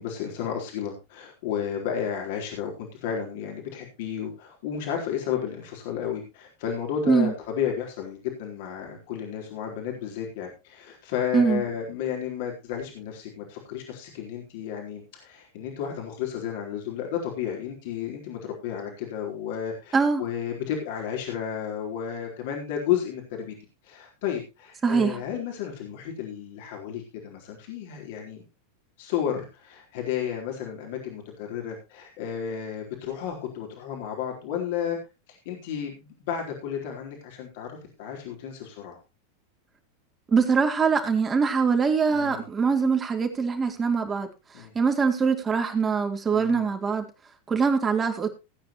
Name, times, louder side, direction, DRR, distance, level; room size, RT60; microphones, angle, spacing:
voice 1, 0.0-23.5 23.8-28.4 29.0-35.0 35.3-39.0 42.1-42.4 44.5-44.7 46.3-46.7, left 8 dB, 60° left, 1 dB, 4.0 m, -32 dB
voice 2, 24.8-25.2 40.3-44.3 44.5-47.1 47.5-48.3, right 5 dB, 20° right, 4 dB, 3.4 m, -23 dB
18.5 x 9.5 x 3.0 m, 0.28 s
hypercardioid pair, 95°, 0 cm